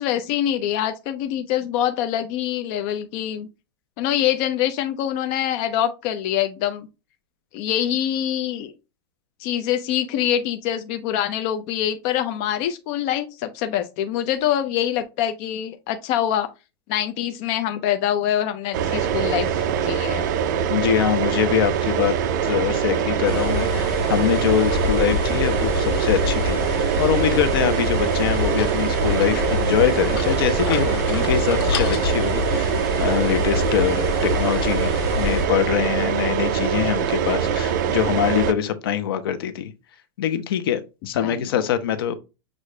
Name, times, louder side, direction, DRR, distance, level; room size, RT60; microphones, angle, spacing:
voice 1, 0.0-3.5 4.0-6.9 7.5-8.7 9.4-16.5 16.9-20.3 41.2-41.5, left 11 dB, 35° left, 0.4 m, -25 dB
sound 1, 18.7-38.5, right 8 dB, 50° right, 0.5 m, -23 dB
voice 2, 20.7-22.1 22.4-34.1 34.3-39.7 40.2-40.8 41.1-42.2, left 9 dB, 70° left, 0.8 m, -23 dB
sound 2, 23.3-35.5, left 5 dB, 90° left, 1.4 m, -27 dB
6.4 x 2.5 x 3.2 m
supercardioid pair, 180°, 12 cm